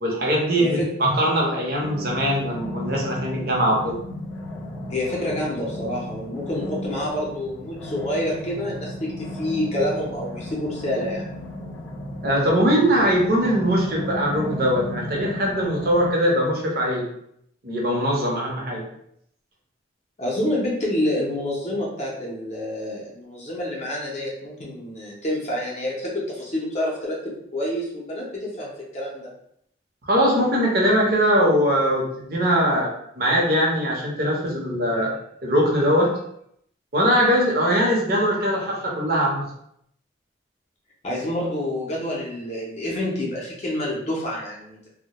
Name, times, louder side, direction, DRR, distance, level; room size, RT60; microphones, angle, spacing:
voice 1, 0.0-4.0 12.2-17.1 17.6-18.8 30.0-35.1 35.4-36.1 36.9-39.5, equal, 50° right, -2 dB, 0.6 m, -21 dB
sound 1, 1.8-16.1, left 1 dB, 85° left, 0.5 m, -35 dB
voice 2, 4.9-11.3 20.2-29.3 41.0-44.9, left 1 dB, 35° left, -4 dB, 0.5 m, -28 dB
2.2 x 2.0 x 2.8 m, 0.72 s
head